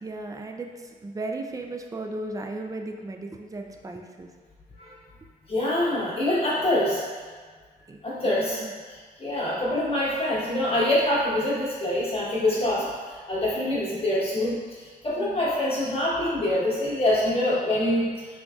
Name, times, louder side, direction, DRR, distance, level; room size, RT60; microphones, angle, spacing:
voice 1, 0.0-0.7 1.0-4.3 7.9-8.7 12.6-12.9 15.2-15.4, right 2 dB, 20° right, 3 dB, 0.3 m, -36 dB
voice 2, 5.5-7.0 8.0-18.3, left 1 dB, 35° left, -8 dB, 1.1 m, -25 dB
3.8 x 3.5 x 2.4 m, 1.6 s
cardioid pair, 100°, 17 cm